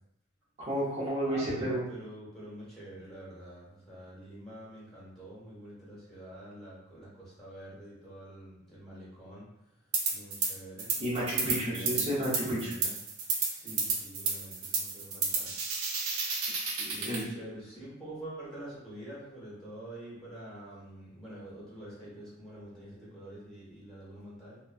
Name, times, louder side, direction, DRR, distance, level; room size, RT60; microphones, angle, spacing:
voice 1, 0.7-1.8 11.0-12.7 16.8-17.2, equal, 30° right, -13 dB, 0.8 m, -31 dB
voice 2, 1.2-9.5 10.1-10.9 11.5-12.9 13.5-15.5 16.9-24.6, right 1 dB, ahead, -9 dB, 1.2 m, -46 dB
sound 1, 9.9-10.5 10.8-17.2, right 4 dB, 85° right, 0.6 m, -31 dB
3.0 x 2.1 x 2.4 m, 0.83 s
head